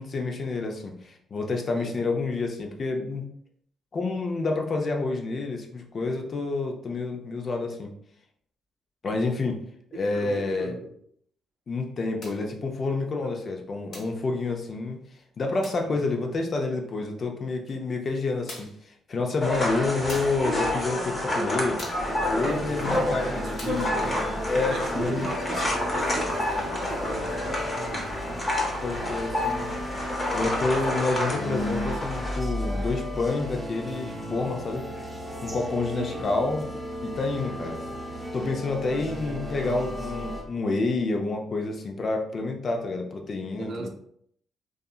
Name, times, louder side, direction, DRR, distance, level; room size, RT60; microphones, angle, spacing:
voice 1, 0.0-3.2 3.9-7.9 9.0-9.6 9.9-10.7 11.7-15.0 15.4-21.8 22.3-23.9 24.5-25.3 28.8-29.7 30.3-34.9 35.4-36.7 37.0-37.8 38.3-43.9, left 3 dB, 45° left, 0.5 m, -28 dB
voice 2, 1.7-2.1 9.9-10.9 13.2-13.5 15.8-16.4 22.4-24.3 24.7-28.4 35.9-36.3 39.1-39.7 43.6-43.9, right 4 dB, 65° right, 0.4 m, -39 dB
sound 1, 12.2-12.5 13.9-14.2 15.6-15.9 17.7-17.8 18.5-18.9 20.1-20.5 21.8-22.1 23.6-23.9, left 1 dB, 60° left, 1.3 m, -43 dB
sound 2, 19.4-32.4, left 1 dB, 25° left, 0.9 m, -29 dB
sound 3, 22.0-40.4, equal, 5° right, 0.8 m, -35 dB
2.7 x 2.4 x 2.3 m
cardioid pair, 90°, 0 cm